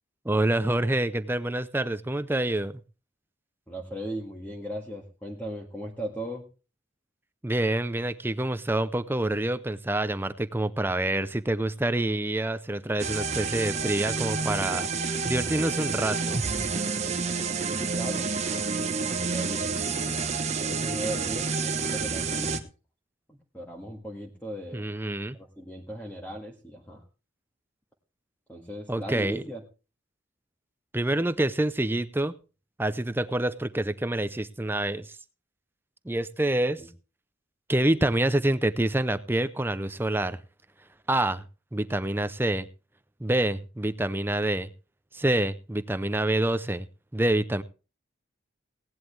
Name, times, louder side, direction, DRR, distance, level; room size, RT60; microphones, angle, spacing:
voice 1, 0.3-2.7 7.4-14.9 15.3-16.4 24.7-25.4 28.9-29.4 30.9-32.3 32.8-35.1 36.1-36.8 37.7-40.4 41.1-41.4 41.7-42.7 43.2-44.7 45.1-46.9 47.1-47.6, right 1 dB, 10° right, 13 dB, 0.5 m, -27 dB
voice 2, 3.7-6.4 17.6-22.6 23.3-24.9 25.3-27.0 28.5-29.6 36.8-36.9, right 1 dB, 10° left, -1 dB, 1.8 m, -38 dB
sound 1, 13.0-22.6, right 4 dB, 30° right, 1.2 m, -29 dB
17.5 x 11.0 x 3.3 m, 0.33 s
head